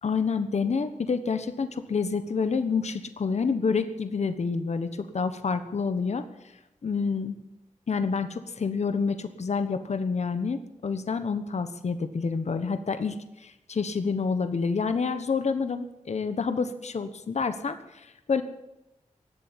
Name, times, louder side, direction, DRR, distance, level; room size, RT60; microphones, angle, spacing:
voice 1, 0.0-6.2 6.8-7.4 7.9-18.4, left 5 dB, 60° left, 10 dB, 1.2 m, -28 dB
18.5 x 8.0 x 9.7 m, 0.91 s
wide cardioid pair, 100°, 13 cm